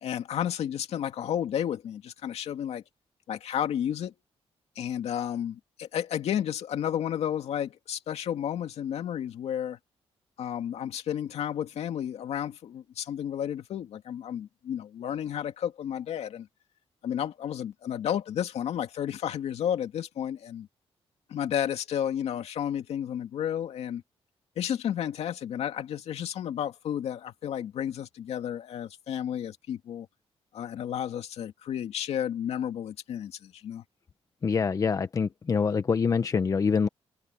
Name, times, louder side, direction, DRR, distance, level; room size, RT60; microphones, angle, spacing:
voice 1, 0.0-2.8 3.3-4.1 4.8-9.8 10.4-16.5 17.0-20.7 21.3-24.0 24.6-30.1 30.5-33.8, left 9 dB, 70° left, 2.4 m, -32 dB
voice 2, 34.4-36.9, left 5 dB, 30° left, 0.9 m, -25 dB
cardioid pair, 150°, 11 cm